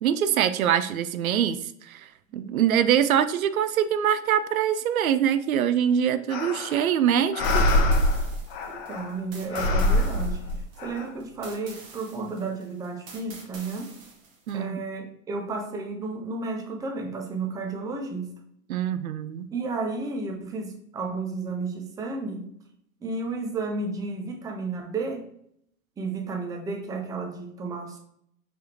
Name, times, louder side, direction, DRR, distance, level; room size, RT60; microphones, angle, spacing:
voice 1, 0.0-7.6 14.5-14.8 18.7-19.5, right 9 dB, 80° right, 12 dB, 0.5 m, -24 dB
sound 1, 6.3-6.9 7.3-9.2 9.5-11.0, left 1 dB, 40° left, 0.8 m, -24 dB
sound 2, 7.4-14.6, right 4 dB, 35° right, 1.2 m, -46 dB
voice 2, 8.7-10.4 10.8-14.0 14.5-18.3 19.5-22.5 23.0-25.3 26.0-28.0, right 3 dB, 10° right, 2 dB, 0.5 m, -32 dB
4.6 x 3.5 x 2.8 m, 0.70 s
hypercardioid pair, 110°, 41 cm